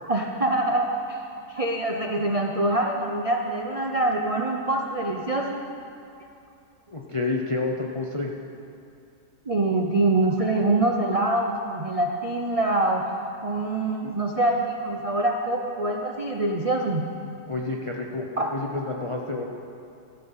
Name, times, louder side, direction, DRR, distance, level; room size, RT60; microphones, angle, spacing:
voice 1, 0.0-5.6 9.5-13.1 13.4-17.1 18.4-18.5, right 2 dB, 50° right, 1 dB, 0.4 m, -25 dB
voice 2, 6.9-8.3 17.5-19.4, left 3 dB, 35° left, 1 dB, 0.5 m, -29 dB
14.0 x 11.0 x 5.6 m, 2.6 s
omnidirectional pair, 1.8 m